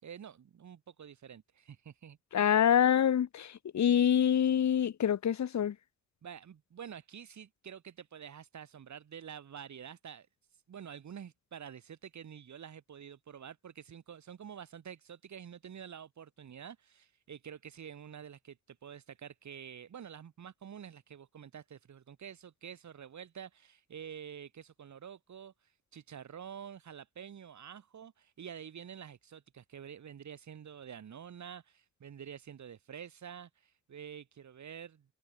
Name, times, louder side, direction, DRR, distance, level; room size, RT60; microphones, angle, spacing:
voice 1, 0.0-2.5 6.2-10.3 10.5-35.1, right 8 dB, 65° right, 7.4 m, -48 dB
voice 2, 2.3-5.7, left 9 dB, 65° left, 2.0 m, -26 dB
cardioid pair, 105°, 31 cm